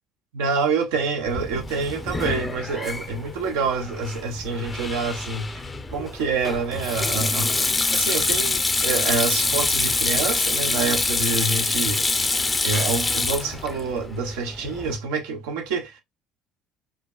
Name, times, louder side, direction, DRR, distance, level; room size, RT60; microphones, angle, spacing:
voice 1, 0.3-5.6 5.9-12.1 12.6-16.0, right 4 dB, 80° right, 0.7 m, -27 dB
Sink (filling or washing), 1.3-15.0, left 3 dB, 20° left, 0.6 m, -25 dB
4.7 x 2.3 x 2.4 m
supercardioid pair, 75°, 0 cm